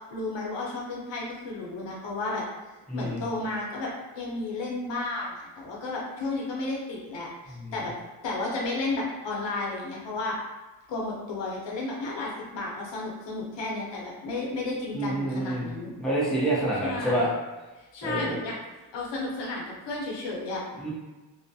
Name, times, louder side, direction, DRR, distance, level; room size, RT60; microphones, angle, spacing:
voice 1, 0.1-3.9 4.2-7.9 8.2-10.4 10.9-15.9 16.8-17.3 17.8-18.6 18.9-20.6, left 2 dB, 80° left, -3 dB, 0.7 m, -33 dB
voice 2, 2.9-3.2 7.6-7.7 14.9-15.7 16.0-17.3 18.0-18.3 20.8-20.9, right 1 dB, ahead, -7 dB, 0.6 m, -27 dB
2.2 x 2.1 x 2.6 m, 1.2 s
wide cardioid pair, 95°, 43 cm